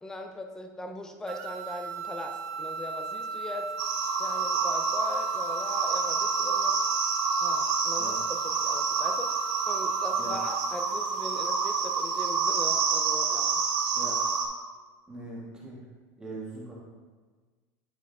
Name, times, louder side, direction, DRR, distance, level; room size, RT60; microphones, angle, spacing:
voice 1, 0.0-3.7 4.2-6.8 7.4-13.6, left 1 dB, 5° left, 4 dB, 0.6 m, -40 dB
sound 1, 1.3-10.9, right 4 dB, 65° right, 0.6 m, -36 dB
sound 2, 3.8-14.4, right 5 dB, 85° right, 1.2 m, -28 dB
voice 2, 15.1-15.8 16.2-16.7, right 2 dB, 10° right, -6 dB, 1.8 m, -40 dB
9.9 x 5.1 x 3.5 m, 1.4 s
cardioid pair, 155°, 8 cm